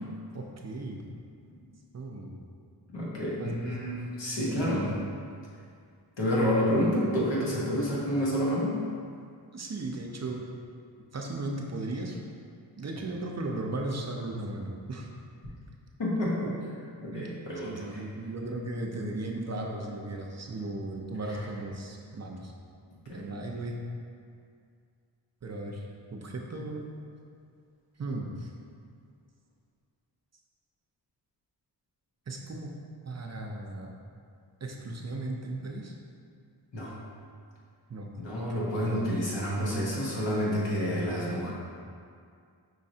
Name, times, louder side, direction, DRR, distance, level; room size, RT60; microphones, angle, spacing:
voice 1, 0.3-1.0 1.9-2.3 3.4-3.5 4.4-4.7 9.5-10.4 11.1-12.2 12.8-15.1 17.1-17.3 17.6-22.5 23.1-23.8 25.4-25.9 26.1-26.8 28.0-28.5 32.3-32.7 33.0-33.9 34.6-35.9 37.9-38.1 38.4-38.6, right 2 dB, 40° right, 1 dB, 0.5 m, -36 dB
voice 2, 2.9-5.0 6.2-8.8 16.0-16.5 17.0-18.0 21.2-21.4 23.0-23.3 36.7-36.9 38.2-41.5, equal, 75° left, -6 dB, 1.3 m, -29 dB
5.6 x 3.1 x 2.7 m, 2.3 s
cardioid pair, 55°, 44 cm